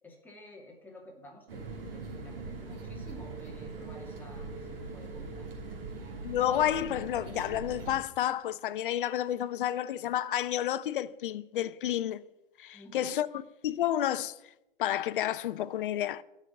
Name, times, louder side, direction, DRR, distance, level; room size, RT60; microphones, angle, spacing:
voice 1, 0.0-5.5 12.7-13.2, left 1 dB, 5° left, 2.5 m, -52 dB
sound 1, 1.5-8.0, right 3 dB, 70° right, 3.1 m, -41 dB
voice 2, 6.2-12.2 12.6-14.4 14.8-16.2, left 11 dB, 60° left, 0.7 m, -30 dB
10.5 x 6.3 x 9.1 m
hypercardioid pair, 135°, 29 cm